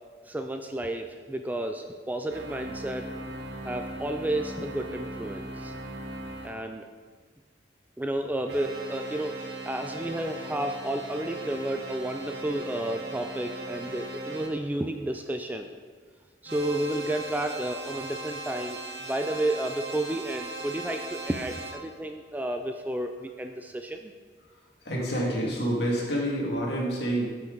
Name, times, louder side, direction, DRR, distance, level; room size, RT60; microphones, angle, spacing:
voice 1, 0.3-3.1 3.6-5.7 6.4-6.9 8.0-15.8 16.4-24.1, right 1 dB, 10° right, 5 dB, 0.4 m, -31 dB
sound 1, 2.3-6.5 8.5-14.5 16.5-21.7, right 2 dB, 70° right, 1.0 m, -38 dB
voice 2, 24.9-27.2, right 1 dB, 65° left, -3 dB, 2.2 m, -27 dB
10.5 x 5.8 x 3.9 m, 1.5 s
head